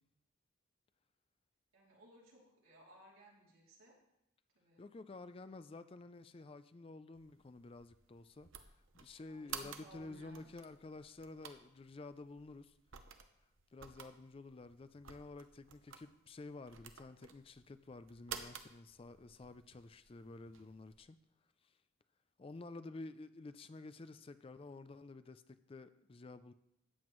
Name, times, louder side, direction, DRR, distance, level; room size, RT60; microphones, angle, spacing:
voice 1, 1.7-4.0 4.5-4.9 9.1-10.5, right 1 dB, 85° right, 3.0 m, -61 dB
voice 2, 4.8-8.7 8.9-12.7 13.7-21.2 22.4-26.5, left 3 dB, 25° left, 0.3 m, -51 dB
sound 1, 7.1-21.0, right 7 dB, 70° right, 0.8 m, -53 dB
13.5 x 9.0 x 3.1 m
head